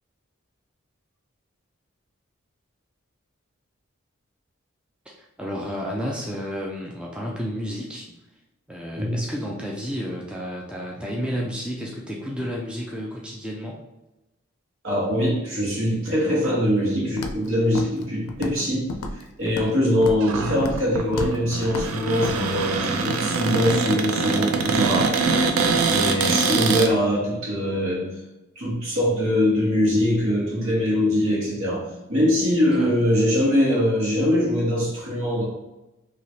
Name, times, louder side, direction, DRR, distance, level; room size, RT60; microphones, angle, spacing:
voice 1, 5.1-8.1 8.7-13.8 25.8-26.3 32.8-32.9, equal, 5° right, -3 dB, 0.3 m, -31 dB
voice 2, 14.8-18.9 19.1-25.2 25.9-28.1 28.5-35.4, equal, 75° right, -5 dB, 1.5 m, -22 dB
Walk footsteps, 17.2-17.5 17.7-18.0 18.3-18.6 18.9-19.7 20.0-20.3 20.6-20.9 21.1-21.4 21.6-21.9 22.2-22.4, left 2 dB, 85° left, 0.4 m, -32 dB
Cupboard open or close, 20.2-26.9, right 4 dB, 90° right, 0.4 m, -24 dB
3.2 x 2.8 x 2.7 m, 0.98 s
head